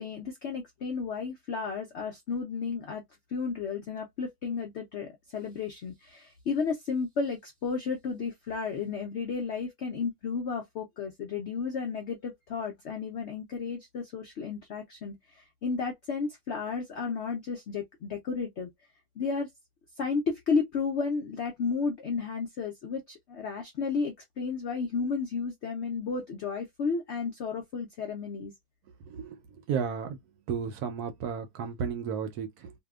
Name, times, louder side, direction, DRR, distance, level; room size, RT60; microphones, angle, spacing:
voice 1, 0.0-3.0 3.3-18.7 19.2-19.5 20.0-28.5, left 5 dB, 80° left, 0.6 m, -33 dB
voice 2, 29.7-30.2 30.5-32.7, right 7 dB, 70° right, 1.0 m, -33 dB
2.7 x 2.2 x 2.2 m
omnidirectional pair, 1.8 m